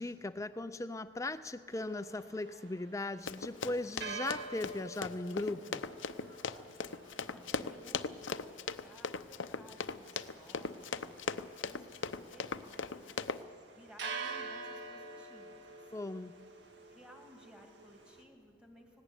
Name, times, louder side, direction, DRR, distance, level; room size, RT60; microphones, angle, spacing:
voice 1, 0.0-5.9 15.9-16.3, left 2 dB, 15° left, 12 dB, 0.4 m, -38 dB
sound 1, 1.7-18.2, right 4 dB, 60° right, 1.9 m, -48 dB
Run, 3.3-13.4, left 5 dB, 80° left, 0.7 m, -39 dB
voice 2, 7.3-13.4 13.7-16.1 16.9-19.0, equal, 5° right, 2 dB, 2.3 m, -58 dB
18.0 x 17.0 x 9.9 m, 2.1 s
head